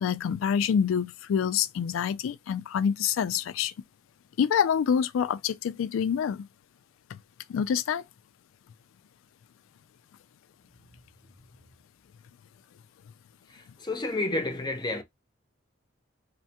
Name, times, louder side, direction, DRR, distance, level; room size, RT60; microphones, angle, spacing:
voice 1, 0.0-3.7 4.4-6.5 7.5-8.0, left 7 dB, 85° left, 0.3 m, -26 dB
voice 2, 13.5-15.0, left 2 dB, 20° left, 0.5 m, -30 dB
3.3 x 2.1 x 2.8 m
head